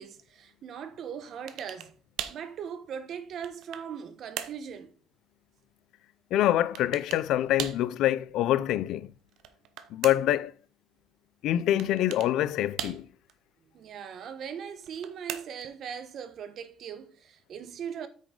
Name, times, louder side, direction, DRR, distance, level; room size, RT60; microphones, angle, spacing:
voice 1, 0.0-1.9 2.3-4.9 13.7-18.1, right 7 dB, 45° right, 1.1 m, -39 dB
sound 1, 1.5-1.9 2.2-2.5 3.1-3.9 4.4-4.6 6.7-7.3 7.6-7.9 9.3-10.4 11.8-12.3 12.8-13.3 14.7-15.7, right 11 dB, 80° right, 0.9 m, -38 dB
voice 2, 6.3-9.1 9.9-10.5 11.4-13.1, left 13 dB, 75° left, 0.5 m, -25 dB
8.7 x 6.5 x 3.8 m
cardioid pair, 175°, 0 cm